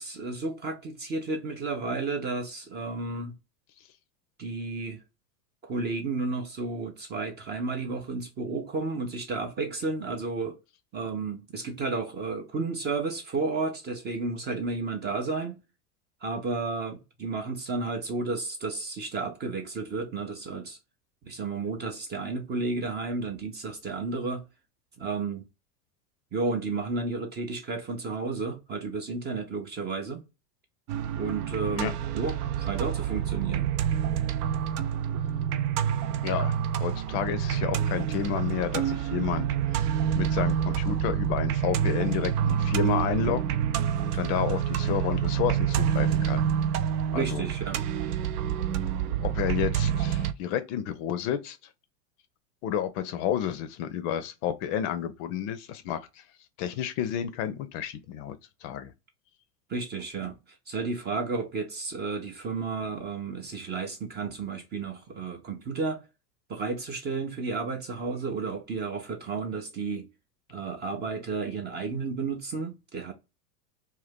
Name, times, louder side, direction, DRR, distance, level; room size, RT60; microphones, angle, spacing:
voice 1, 0.0-3.3 4.4-5.0 5.6-10.6 10.9-15.6 16.2-20.8 21.2-24.4 25.0-25.5 26.3-30.2 31.1-33.7 47.1-47.8 59.7-60.4 60.7-66.0 66.5-70.1 70.5-73.1, right 3 dB, 20° right, 0.5 m, -32 dB
sound 1, 30.9-50.3, right 9 dB, 70° right, 0.6 m, -27 dB
voice 2, 36.2-36.5 36.8-39.5 39.7-43.4 44.0-46.4 47.1-47.4 49.2-51.6 52.6-56.2 56.6-58.9, left 10 dB, 45° left, 0.5 m, -31 dB
2.5 x 2.2 x 3.4 m
hypercardioid pair, 100°, 48 cm